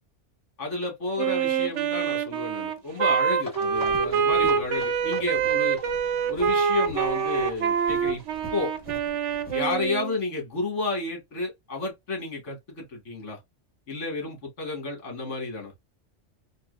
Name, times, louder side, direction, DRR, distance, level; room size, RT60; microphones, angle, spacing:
voice 1, 0.6-5.8 6.3-8.2 8.5-8.7 9.5-13.4 13.9-15.7, left 3 dB, 75° left, 2.1 m, -31 dB
Wind instrument woodwind instrument, 1.2-10.2, right 7 dB, 80° right, 1.0 m, -25 dB
sound 1, 3.4-9.0 9.2-9.3 9.6-9.7 9.9-10.0, left 3 dB, 35° left, 2.6 m, -45 dB
sound 2, 3.7-9.9, left 1 dB, 10° left, 1.2 m, -46 dB
3.8 x 2.6 x 2.5 m
omnidirectional pair, 1.2 m